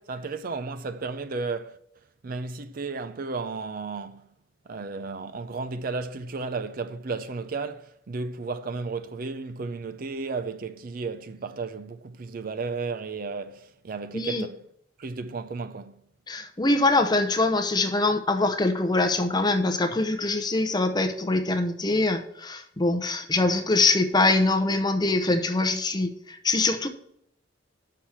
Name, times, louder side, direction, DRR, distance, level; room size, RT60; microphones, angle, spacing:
voice 1, 0.1-1.8 2.2-4.3 4.7-14.6 15.0-16.0, right 4 dB, 50° right, 0.5 m, -33 dB
voice 2, 14.1-14.4 16.3-26.9, left 2 dB, 20° left, 0.7 m, -23 dB
6.4 x 5.8 x 7.2 m
head